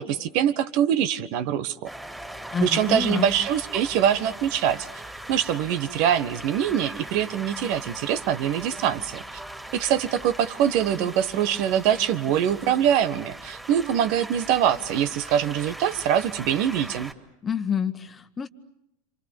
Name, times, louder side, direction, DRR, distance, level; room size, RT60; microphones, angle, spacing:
voice 1, 0.0-1.9 2.6-4.9 5.3-9.2 9.7-17.1, right 9 dB, 55° right, 12 dB, 1.4 m, -24 dB
sound 1, 1.9-17.1, right 1 dB, 5° right, 3.1 m, -40 dB
voice 2, 2.5-3.2 17.4-18.5, left 7 dB, 25° left, 10 dB, 1.4 m, -27 dB
28.0 x 27.0 x 7.1 m, 0.85 s
figure-of-eight pair, 85°, 0 cm